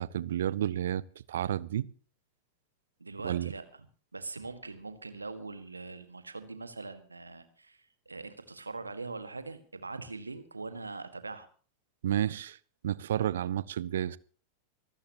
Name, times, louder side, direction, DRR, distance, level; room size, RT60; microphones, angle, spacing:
voice 1, 0.0-1.9 3.2-3.5 12.0-12.6 12.8-14.2, right 11 dB, 60° right, 0.6 m, -31 dB
voice 2, 3.0-3.9 4.1-11.5, right 3 dB, 80° right, 1.7 m, -42 dB
25.5 x 13.5 x 3.0 m
figure-of-eight pair, 90°, 0 cm